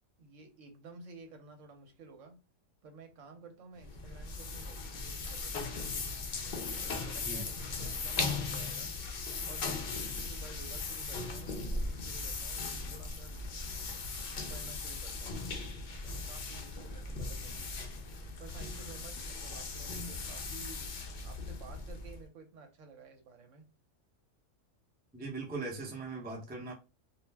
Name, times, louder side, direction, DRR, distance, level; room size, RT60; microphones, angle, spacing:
voice 1, 0.2-2.4 2.8-6.0 6.9-7.5 7.8-8.9 9.5-13.5 14.5-15.5 15.9-17.7 18.4-21.0 21.2-23.7, right 4 dB, 75° right, 1.0 m, -53 dB
sound 1, 3.8-22.3, left 3 dB, 55° left, 0.5 m, -38 dB
voice 2, 25.1-26.7, right 3 dB, 10° right, 0.4 m, -39 dB
2.4 x 2.0 x 3.2 m
omnidirectional pair, 1.3 m